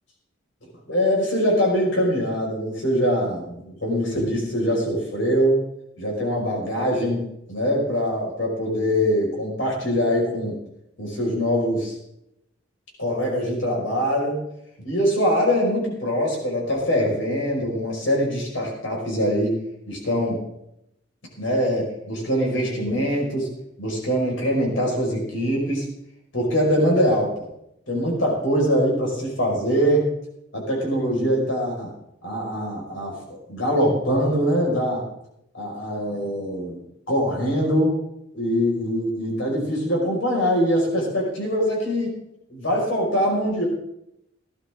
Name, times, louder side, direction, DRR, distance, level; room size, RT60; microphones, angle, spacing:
voice 1, 0.9-5.6 6.0-10.5 11.0-11.9 13.0-14.4 14.8-19.6 19.9-20.4 21.4-23.5 23.8-25.9 26.3-27.5 27.9-30.1 30.5-31.9 32.2-35.0 35.5-36.8 37.1-38.0 38.3-42.2 42.5-43.7, equal, 80° left, -1 dB, 5.4 m, -23 dB
17.0 x 12.5 x 3.7 m, 0.80 s
head